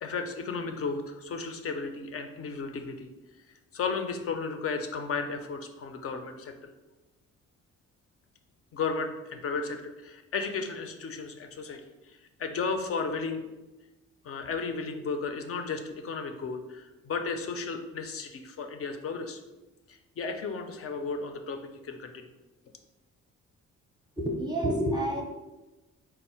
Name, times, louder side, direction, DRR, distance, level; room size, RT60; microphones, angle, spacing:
voice 1, 0.0-3.1 3.7-6.7 8.7-11.8 12.1-13.4 14.2-19.4 20.2-21.6 21.8-22.3, left 4 dB, 50° left, 6 dB, 0.5 m, -34 dB
voice 2, 24.2-25.2, equal, 15° right, 0 dB, 0.6 m, -28 dB
4.4 x 2.0 x 4.2 m, 1.1 s
cardioid pair, 90°, 30 cm